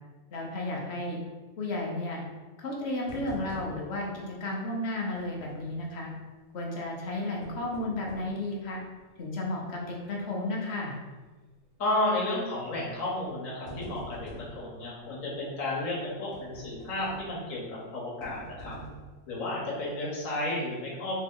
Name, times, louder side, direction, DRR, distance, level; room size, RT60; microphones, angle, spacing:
voice 1, 0.3-1.2 1.6-2.2 2.6-6.1 6.5-8.8 9.2-11.0, left 2 dB, 60° left, -1 dB, 1.0 m, -33 dB
sound 1, 3.1-4.1 4.3-4.4 5.2-5.8 7.2-8.4 9.0-9.1 9.7-10.0 10.3-10.4 11.5-11.8 12.7-12.9 13.3-14.6 16.3-17.5 18.2-19.2 19.7-19.8 20.2-20.3, right 1 dB, 75° right, 1.8 m, -44 dB
voice 2, 11.8-18.8 19.3-21.1, left 1 dB, 90° left, -4 dB, 1.3 m, -32 dB
3.4 x 2.9 x 3.6 m, 1.3 s
omnidirectional pair, 1.4 m